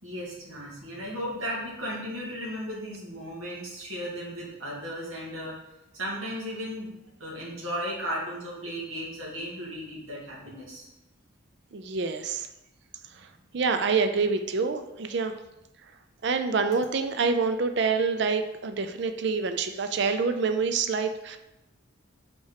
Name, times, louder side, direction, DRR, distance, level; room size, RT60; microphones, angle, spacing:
voice 1, 0.0-5.6 5.9-10.9 13.1-13.3, equal, 85° right, -4 dB, 2.1 m, -35 dB
voice 2, 11.7-12.5 13.5-15.4 16.2-21.4, right 4 dB, 55° right, 8 dB, 0.4 m, -26 dB
5.7 x 4.5 x 4.8 m, 0.93 s
head